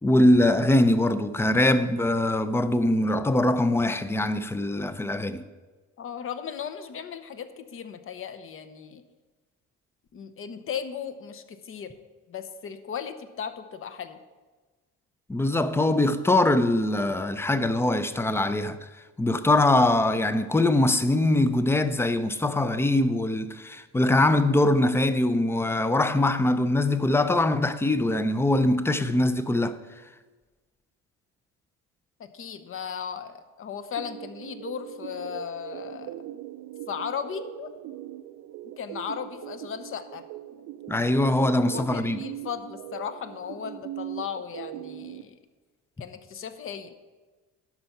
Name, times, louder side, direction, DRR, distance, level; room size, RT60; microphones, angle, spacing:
voice 1, 0.0-5.4 15.3-18.9 19.2-29.8 40.9-42.2, left 1 dB, 10° left, 0.5 m, -22 dB
voice 2, 6.0-9.0 10.1-11.9 12.3-14.2 32.2-36.1 36.9-37.7 38.6-40.2 41.5-45.4 46.0-46.9, left 7 dB, 45° left, 0.9 m, -36 dB
sound 1, 33.9-45.2, right 13 dB, 75° right, 0.5 m, -40 dB
12.0 x 5.6 x 5.8 m
cardioid pair, 115°, 31 cm